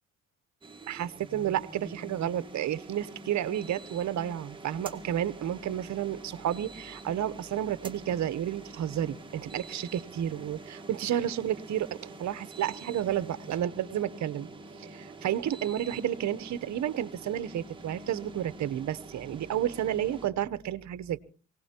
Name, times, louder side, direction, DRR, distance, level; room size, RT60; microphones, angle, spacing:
sound 1, 0.6-20.3, right 2 dB, 15° right, 1.7 m, -46 dB
voice 1, 0.9-14.5 14.8-21.2, right 11 dB, 60° right, 16 dB, 0.9 m, -31 dB
24.0 x 18.0 x 2.9 m, 0.38 s
cardioid pair, 95°, 32 cm